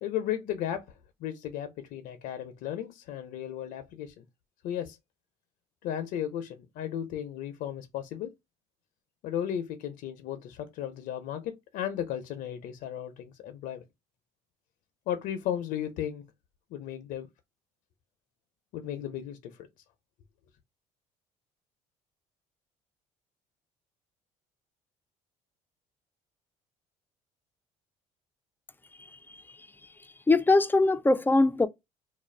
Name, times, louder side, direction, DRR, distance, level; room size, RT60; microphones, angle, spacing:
voice 1, 0.0-4.2 4.6-5.0 5.8-8.3 9.2-13.8 15.1-16.2 16.7-17.3 18.7-19.7, left 10 dB, 70° left, 0.5 m, -35 dB
voice 2, 29.0-29.4 30.3-31.7, left 2 dB, 15° left, 0.3 m, -23 dB
2.3 x 2.1 x 3.2 m
supercardioid pair, 75°, 15 cm